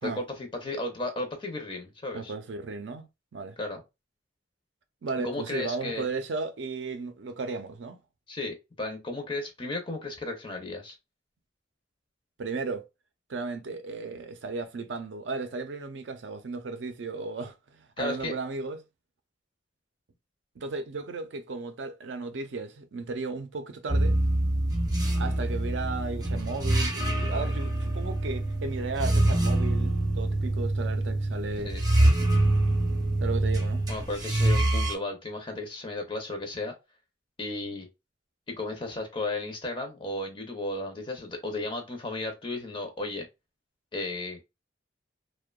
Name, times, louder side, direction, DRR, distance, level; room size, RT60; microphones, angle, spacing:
voice 1, 0.0-2.3 3.6-3.8 5.2-6.1 8.3-11.0 18.0-18.3 31.6-32.3 33.9-36.7 37.4-37.9 38.5-43.3 43.9-44.4, left 2 dB, 25° left, 0.5 m, -34 dB
voice 2, 2.1-3.6 5.0-8.0 12.4-12.8 13.3-18.8 20.6-24.2 25.2-31.7 33.2-33.8, right 3 dB, 75° right, 0.5 m, -35 dB
sound 1, 23.9-34.9, right 1 dB, 20° right, 0.5 m, -25 dB
2.8 x 2.1 x 2.2 m
head